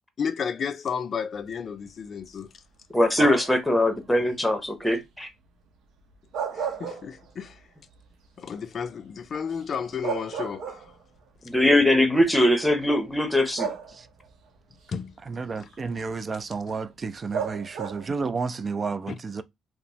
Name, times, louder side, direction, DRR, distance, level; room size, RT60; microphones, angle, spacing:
voice 1, 0.2-2.5 6.5-7.6 8.4-10.9 14.9-15.7 19.1-19.2, left 6 dB, 50° left, 0.4 m, -33 dB
voice 2, 2.9-5.3 11.5-13.7, left 1 dB, 5° left, 0.8 m, -21 dB
sound 1, 3.1-3.7 6.1-7.5 7.9-8.0 9.6-9.7 10.0-11.2 12.2-12.3 13.6-14.3 17.3-18.2, right 7 dB, 75° right, 0.7 m, -33 dB
voice 3, 15.3-19.4, right 4 dB, 35° right, 0.3 m, -31 dB
2.9 x 2.0 x 2.7 m
cardioid pair, 80°, 0 cm